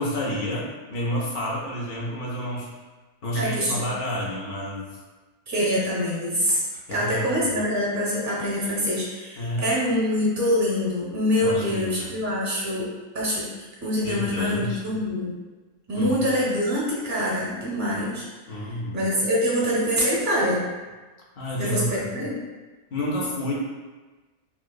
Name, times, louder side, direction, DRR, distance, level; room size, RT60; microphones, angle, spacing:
voice 1, 0.0-2.7 3.2-4.9 6.9-7.3 9.4-9.7 11.4-12.1 14.0-14.8 15.9-16.2 18.5-19.0 21.4-22.1 22.9-23.5, equal, 70° left, -4 dB, 1.1 m, -29 dB
voice 2, 3.3-3.8 5.5-12.9 13.1-13.5 13.8-15.3 15.9-18.3 18.6-20.7 21.5-22.4, equal, 25° right, -6 dB, 0.4 m, -25 dB
3.7 x 2.4 x 2.2 m, 1.3 s
omnidirectional pair, 1.7 m